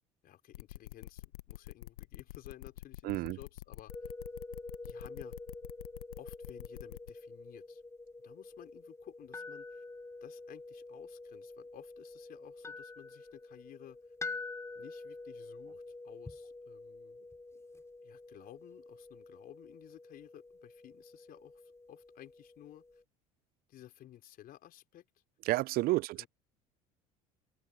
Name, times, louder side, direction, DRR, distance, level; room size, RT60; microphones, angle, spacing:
voice 1, 0.2-4.1 4.8-5.3 6.2-7.8 8.2-9.8 10.2-14.0 14.7-17.2 18.0-23.0 23.7-25.2 26.2-26.3, left 12 dB, 55° left, 4.5 m, -55 dB
sound 1, 0.5-7.1, left 15 dB, 85° left, 1.2 m, -47 dB
voice 2, 3.0-3.4 25.5-26.2, right 18 dB, 55° right, 0.5 m, -30 dB
sound 2, 3.9-23.0, left 3 dB, 15° left, 4.1 m, -47 dB
open air
hypercardioid pair, 70°, 18 cm